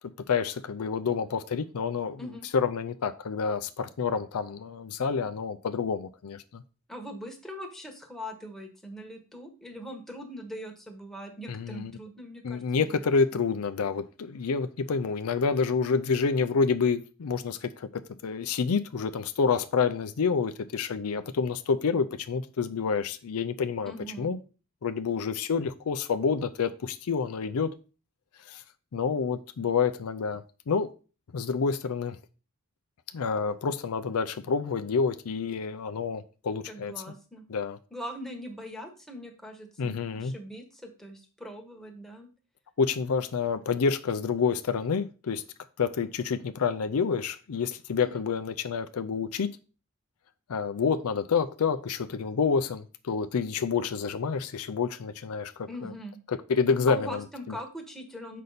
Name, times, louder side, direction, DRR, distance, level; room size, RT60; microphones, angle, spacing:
voice 1, 0.3-2.2 2.5-6.6 11.5-11.9 12.4-17.9 18.2-24.4 24.8-27.7 28.5-28.6 28.9-30.4 30.7-30.9 31.3-32.2 33.1-36.9 37.5-37.8 39.8-40.3 42.8-45.4 45.8-49.5 50.5-55.9 56.3-57.2, left 5 dB, 75° left, 0.5 m, -28 dB
voice 2, 6.9-13.4 23.9-24.3 36.7-37.4 37.9-42.3 48.0-48.2 55.7-56.2 56.9-58.4, equal, ahead, 1.3 m, -41 dB
6.7 x 5.5 x 4.0 m
head